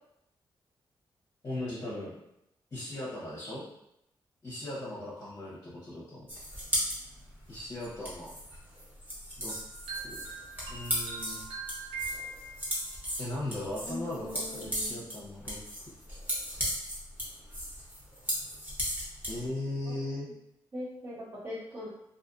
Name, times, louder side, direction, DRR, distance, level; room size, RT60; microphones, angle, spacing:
voice 1, 1.4-2.1 2.7-3.7 4.4-6.3 7.5-8.3 9.4-9.5 10.0-10.1 10.7-11.4 13.2-15.6 19.3-20.3, left 1 dB, 40° left, -7 dB, 0.8 m, -38 dB
sound 1, 6.3-19.5, equal, 20° right, 1.2 m, -36 dB
sound 2, 9.5-13.0, right 4 dB, 75° right, 0.7 m, -41 dB
voice 2, 13.8-15.1 19.9-20.0 20.7-21.9, left 1 dB, 35° right, -15 dB, 1.4 m, -41 dB
2.6 x 2.4 x 2.5 m, 0.82 s
cardioid pair, 75°, 9 cm